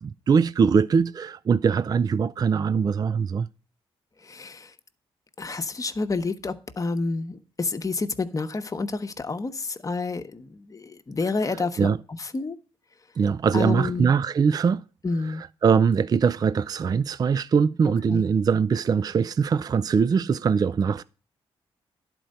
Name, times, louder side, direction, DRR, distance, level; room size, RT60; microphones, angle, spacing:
voice 1, 0.0-3.5 11.8-12.0 13.2-14.8 15.6-21.0, right 6 dB, 40° right, 0.3 m, -22 dB
voice 2, 4.2-4.7 5.4-12.6 13.5-14.2 15.0-15.4 18.1-18.3, left 3 dB, 35° left, 1.0 m, -29 dB
11.0 x 4.5 x 6.4 m
cardioid pair, 65°, 10 cm